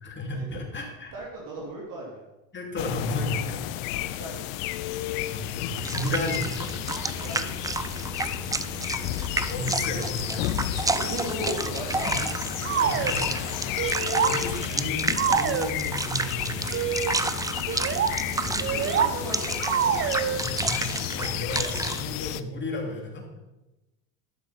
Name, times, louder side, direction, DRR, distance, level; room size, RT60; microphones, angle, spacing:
voice 1, 0.0-1.1 2.5-3.6 5.3-6.7 9.5-10.4 12.1-12.2 12.8-13.4 14.2-17.0 18.4-18.6 20.4-23.2, left 2 dB, 25° left, 1 dB, 2.9 m, -33 dB
voice 2, 1.1-2.2 3.9-4.5 7.1-7.6 10.8-12.2 17.8-20.4 21.6-21.7, right 1 dB, 50° right, -3 dB, 3.0 m, -37 dB
sound 1, 2.8-22.4, left 15 dB, 80° left, 0.7 m, -32 dB
sound 2, 5.7-22.0, right 3 dB, 10° right, 0.5 m, -31 dB
sound 3, 12.6-13.2 13.8-14.4 15.1-15.7 16.7-17.1 17.7-18.1 18.6-19.1 19.6-20.4, right 8 dB, 30° right, 0.8 m, -26 dB
11.5 x 6.7 x 5.7 m, 1.0 s
supercardioid pair, 95°, 40 cm